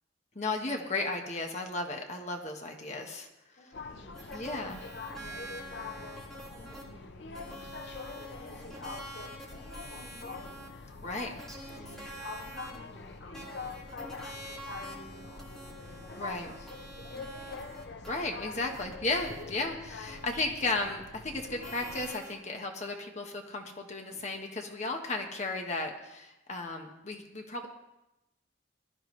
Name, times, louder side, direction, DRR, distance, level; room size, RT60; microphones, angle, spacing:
voice 1, 0.3-3.3 4.3-4.8 11.0-11.3 16.2-16.5 18.0-27.7, left 2 dB, 35° left, 2 dB, 1.3 m, -34 dB
voice 2, 3.6-4.7 5.1-6.1 6.5-7.6 8.0-8.8 9.2-10.6 11.7-12.0 12.3-14.0 14.7-16.6 17.0-17.8 18.3-18.6, left 1 dB, 80° left, -8 dB, 5.8 m, -53 dB
sound 1, 3.7-22.1, left 4 dB, 60° left, 0.7 m, -44 dB
sound 2, 4.1-6.8 7.3-12.8 13.3-19.4 20.1-20.5 21.6-22.6, right 1 dB, ahead, 2.5 m, -47 dB
20.5 x 12.5 x 3.2 m, 0.91 s
head